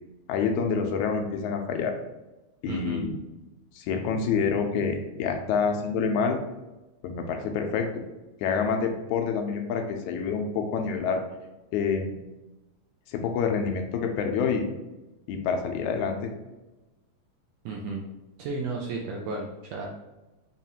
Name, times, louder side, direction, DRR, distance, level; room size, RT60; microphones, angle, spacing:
voice 1, 0.3-1.9 2.6-3.2 3.8-6.4 7.0-7.9 8.4-11.2 11.7-12.1 13.1-14.7 15.3-16.3, left 5 dB, 85° left, 4 dB, 1.9 m, -27 dB
voice 2, 2.7-3.0 17.6-18.0 18.4-19.9, right 3 dB, 80° right, -2 dB, 1.5 m, -33 dB
5.3 x 2.4 x 2.8 m, 1.0 s
omnidirectional pair, 3.4 m